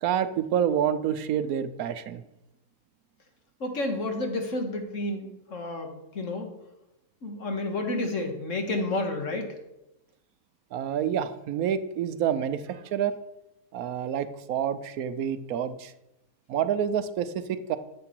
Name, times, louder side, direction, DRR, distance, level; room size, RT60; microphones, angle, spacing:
voice 1, 0.0-2.2 10.7-13.2 13.7-15.9 16.5-17.8, right 9 dB, 75° right, 12 dB, 1.1 m, -28 dB
voice 2, 3.6-6.5 7.2-9.5, left 2 dB, 60° left, 4 dB, 1.8 m, -30 dB
11.0 x 7.6 x 4.5 m, 0.89 s
omnidirectional pair, 1.5 m